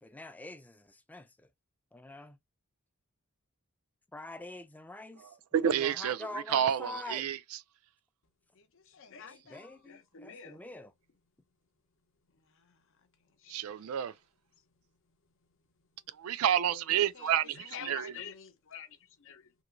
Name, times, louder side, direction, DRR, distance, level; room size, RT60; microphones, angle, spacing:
voice 1, 0.0-1.3 1.9-2.4 4.1-5.2 5.6-7.3 9.5-10.9, left 2 dB, 5° left, 0.4 m, -45 dB
voice 2, 5.2-7.6 13.5-14.1 16.2-18.1, right 9 dB, 75° right, 0.3 m, -30 dB
voice 3, 8.5-10.6 12.3-14.1 14.5-15.2 15.8-15.9 16.7-19.5, left 7 dB, 65° left, 0.7 m, -50 dB
2.9 x 2.9 x 2.5 m
head